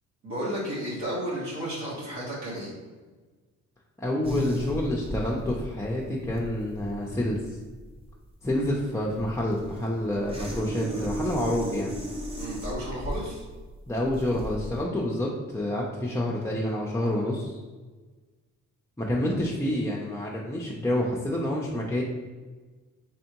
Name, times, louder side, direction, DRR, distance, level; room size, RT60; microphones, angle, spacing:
voice 1, 0.2-2.7 12.4-13.4, equal, 65° right, -7 dB, 1.3 m, -33 dB
voice 2, 4.0-7.4 8.4-12.0 13.9-17.6 19.0-22.0, left 1 dB, 10° left, -4 dB, 0.5 m, -28 dB
sound 1, 4.2-14.8, right 1 dB, 20° right, 0.8 m, -36 dB
3.5 x 3.4 x 2.9 m, 1.3 s
cardioid pair, 90°, 30 cm